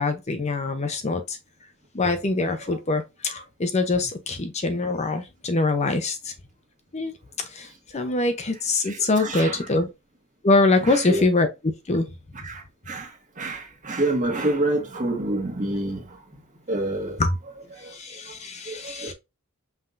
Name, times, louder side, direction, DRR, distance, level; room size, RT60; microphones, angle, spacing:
voice 1, 0.0-1.4 1.9-6.3 6.9-7.1 7.4-9.9 10.4-12.1 17.2-17.4 17.8-19.1, left 2 dB, 30° left, 0.6 m, -24 dB
voice 2, 8.9-9.6 10.8-11.2 12.4-12.6 12.9-13.1 13.4-16.0 16.7-17.2 18.7-19.1, right 2 dB, 35° right, 1.4 m, -27 dB
5.6 x 3.5 x 2.5 m
head